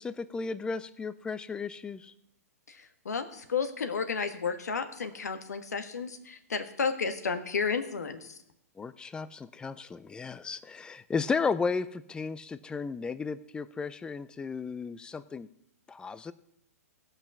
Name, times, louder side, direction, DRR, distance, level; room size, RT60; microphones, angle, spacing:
voice 1, 0.0-2.1 8.8-15.5 15.9-16.3, left 5 dB, 10° left, 15 dB, 0.4 m, -34 dB
voice 2, 2.7-8.4, left 5 dB, 85° left, 8 dB, 1.3 m, -32 dB
16.0 x 5.6 x 6.0 m, 0.79 s
hypercardioid pair, 130°, 9 cm